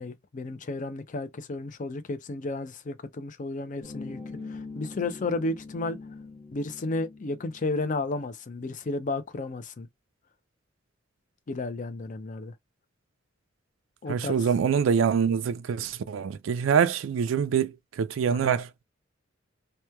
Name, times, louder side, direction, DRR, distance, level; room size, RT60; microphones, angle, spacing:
voice 1, 0.0-6.0 6.5-9.9 11.5-12.5 14.0-14.4 18.3-18.5, left 2 dB, 40° left, 0.5 m, -33 dB
sound 1, 3.8-7.8, left 3 dB, 25° left, 1.0 m, -43 dB
voice 2, 14.1-18.7, right 7 dB, 85° right, 0.3 m, -25 dB
3.0 x 2.2 x 2.2 m
head